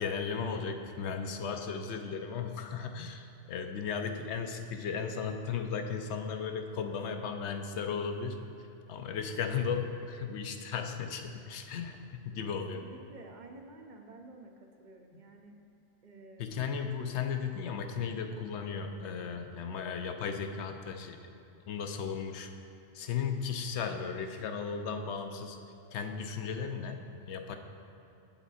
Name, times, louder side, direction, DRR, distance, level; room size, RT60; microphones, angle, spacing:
voice 1, 0.0-8.4 8.9-12.8 16.4-21.2 21.7-22.5 22.9-25.6 25.9-27.6, left 6 dB, 75° left, 6 dB, 0.9 m, -35 dB
voice 2, 12.5-14.5 14.8-15.6 16.0-16.5, right 3 dB, 50° right, 3 dB, 0.7 m, -51 dB
8.1 x 7.1 x 4.1 m, 2.9 s
omnidirectional pair, 1.2 m